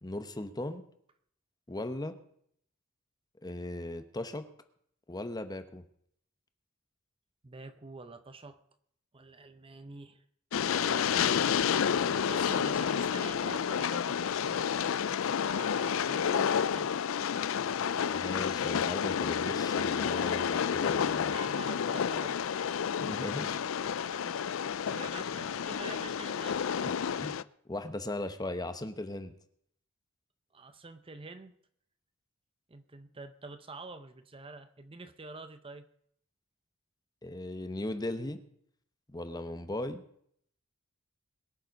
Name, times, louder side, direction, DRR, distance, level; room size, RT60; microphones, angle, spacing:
voice 1, 0.0-0.8 1.7-2.1 3.4-4.4 5.1-5.8 18.0-21.4 23.0-23.6 26.8-26.9 27.2-27.4 27.7-29.3 37.2-38.4 39.1-40.0, left 1 dB, 20° left, 9 dB, 0.9 m, -38 dB
voice 2, 7.4-8.6 9.1-10.2 10.7-14.7 15.4-16.9 21.3-22.9 23.3-23.6 24.0-24.4 24.9-27.0 30.5-31.5 32.7-35.9, right 3 dB, 25° right, 10 dB, 0.7 m, -47 dB
Train, 10.5-27.4, left 7 dB, 70° left, 0.4 m, -30 dB
22.0 x 7.3 x 5.3 m, 0.67 s
head